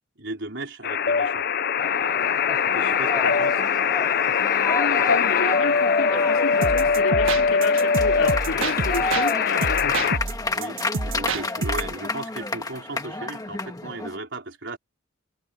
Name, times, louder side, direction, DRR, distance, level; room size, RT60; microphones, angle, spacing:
voice 1, 0.2-1.5 2.7-3.6 10.5-14.8, right 2 dB, 60° right, 4.6 m, -36 dB
sound 1, 0.8-10.2, left 6 dB, 50° left, 0.5 m, -22 dB
sound 2, 1.8-14.2, left 2 dB, 20° left, 1.6 m, -31 dB
voice 2, 4.7-10.0, left 3 dB, 85° left, 3.6 m, -29 dB
sound 3, 6.6-9.3 9.6-11.9, right 3 dB, 80° right, 1.5 m, -28 dB
head